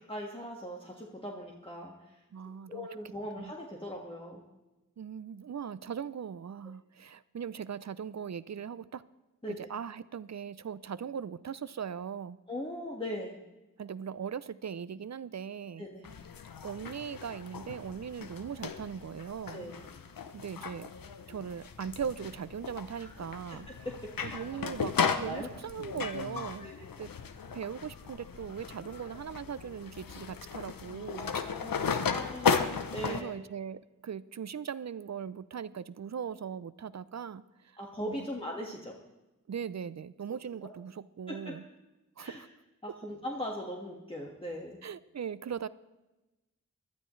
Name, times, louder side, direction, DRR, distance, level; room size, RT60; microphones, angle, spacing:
voice 1, 0.0-2.1 2.7-4.4 9.4-9.7 12.5-13.4 15.8-16.1 19.5-19.9 23.0-23.1 23.7-24.4 25.1-25.5 26.6-26.8 31.2-33.3 37.8-38.9 41.3-41.4 42.2-42.4 42.8-44.8, equal, 15° left, -2 dB, 1.7 m, -40 dB
voice 2, 2.3-2.9 3.4-3.5 5.0-9.0 9.5-12.4 13.8-15.9 16.6-19.7 20.3-20.9 21.3-23.7 24.2-26.7 27.0-27.1 27.5-31.3 33.0-38.3 39.5-41.6 42.2-42.5 42.9-43.0 44.8-45.7, right 7 dB, 55° right, 17 dB, 0.5 m, -39 dB
sound 1, 16.0-33.2, left 6 dB, 85° left, 0.7 m, -36 dB
20.0 x 12.5 x 3.2 m, 1.0 s
cardioid pair, 45°, 33 cm